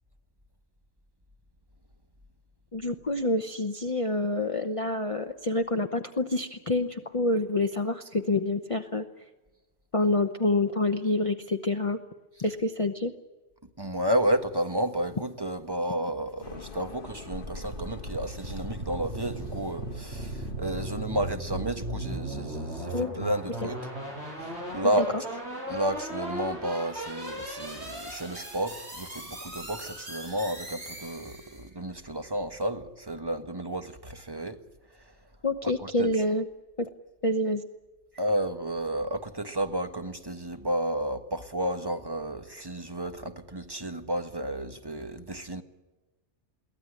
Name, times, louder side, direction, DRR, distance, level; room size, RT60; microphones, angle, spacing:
voice 1, 2.7-9.0 9.9-12.0 12.4-13.1 22.9-23.2 25.0-25.1 35.4-36.5 36.8-36.9 37.2-37.6, left 2 dB, 30° left, 1.0 m, -27 dB
voice 2, 13.8-23.8 24.7-25.2 25.7-34.6 36.0-36.1 38.2-45.6, right 1 dB, 20° right, 1.4 m, -31 dB
sound 1, 16.4-22.4, left 5 dB, 50° left, 1.3 m, -47 dB
sound 2, 17.3-31.7, right 1 dB, 70° right, 7.5 m, -37 dB
23.0 x 17.0 x 9.9 m
omnidirectional pair, 1.2 m